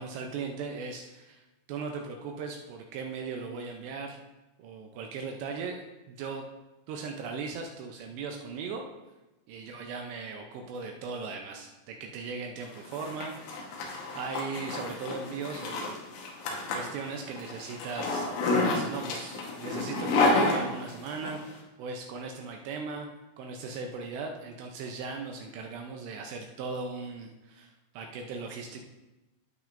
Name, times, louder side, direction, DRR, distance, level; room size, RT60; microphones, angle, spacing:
voice 1, 0.0-4.2 4.6-6.5 6.9-8.8 9.5-13.7 14.1-16.0 16.7-23.1 23.4-28.8, right 4 dB, 85° right, 2 dB, 2.4 m, -38 dB
Zipper (clothing), 12.6-21.3, left 2 dB, 80° left, 3.7 m, -30 dB
12.0 x 9.3 x 2.6 m, 1.0 s
omnidirectional pair, 5.6 m